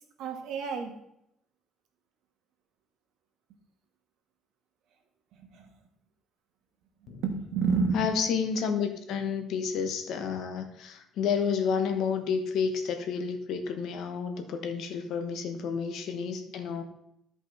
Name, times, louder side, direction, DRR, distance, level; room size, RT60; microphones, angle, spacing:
voice 1, 0.2-1.0 5.4-5.7 7.0-8.2 15.6-15.7, right 5 dB, 75° right, 4 dB, 1.6 m, -30 dB
voice 2, 7.9-16.8, left 6 dB, 60° left, 6 dB, 1.2 m, -30 dB
13.0 x 5.4 x 4.2 m, 0.79 s
cardioid pair, 170°, 0 cm